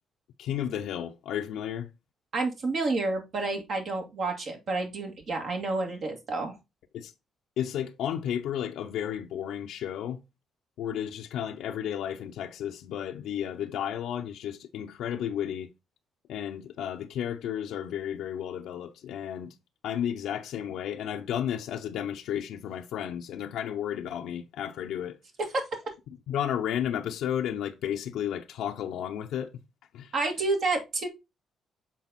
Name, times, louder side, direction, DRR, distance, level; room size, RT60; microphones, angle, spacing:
voice 1, 0.4-1.9 6.9-7.1 7.6-10.2 10.8-15.7 16.3-19.5 19.8-25.2 26.3-29.5 29.9-30.1, left 10 dB, 85° left, 0.7 m, -33 dB
voice 2, 2.3-6.6 25.5-25.6 30.1-31.1, right 3 dB, 60° right, 2.0 m, -29 dB
7.3 x 4.0 x 4.1 m
cardioid pair, 90°, 0 cm